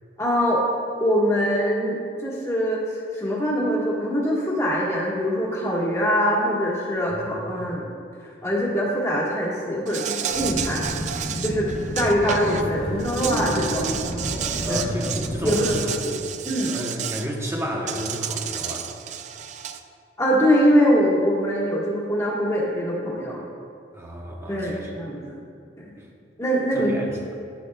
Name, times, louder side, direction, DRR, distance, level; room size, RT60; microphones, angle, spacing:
voice 1, 0.2-0.6 1.0-2.8 3.1-7.9 8.4-10.9 11.4-13.9 14.7-14.8 15.4-15.8 16.4-16.8 20.2-23.4 24.5-25.2 25.8-25.9 26.4-26.9, equal, 15° left, -5 dB, 1.5 m, -23 dB
voice 2, 7.1-7.7 14.6-16.3 16.7-18.9 23.9-24.9 26.0-26.1 26.7-27.1, equal, 15° right, -1 dB, 1.0 m, -32 dB
Insect, 9.9-12.6 13.0-17.3 17.9-19.8, right 9 dB, 40° right, 0.3 m, -31 dB
sound 1, 10.3-15.8, equal, 55° left, 1.5 m, -30 dB
12.0 x 8.3 x 2.3 m, 2.4 s
head